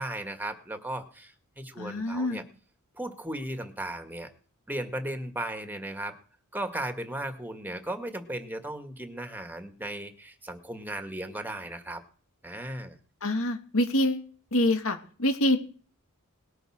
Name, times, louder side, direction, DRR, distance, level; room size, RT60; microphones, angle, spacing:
voice 1, 0.0-2.4 2.9-4.3 4.7-6.2 6.5-12.0 12.4-13.0, right 1 dB, 10° right, 7 dB, 1.9 m, -36 dB
voice 2, 1.8-2.5 13.2-15.6, left 1 dB, 70° left, 7 dB, 2.3 m, -26 dB
20.0 x 8.0 x 6.4 m, 0.42 s
head